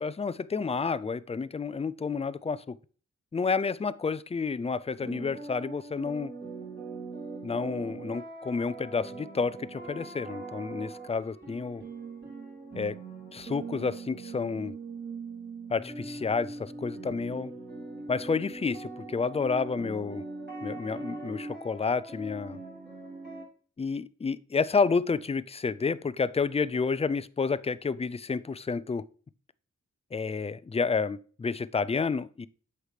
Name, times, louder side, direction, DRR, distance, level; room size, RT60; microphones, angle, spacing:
voice 1, 0.0-2.8 3.3-6.3 7.4-11.8 12.8-13.0 13.3-14.8 15.7-17.5 18.1-20.2 20.6-22.6 23.8-29.0 30.1-32.5, left 5 dB, 20° left, 0.4 m, -30 dB
sound 1, 5.0-23.4, right 3 dB, 35° right, 4.2 m, -41 dB
8.1 x 5.8 x 3.2 m
wide cardioid pair, 70°, 29 cm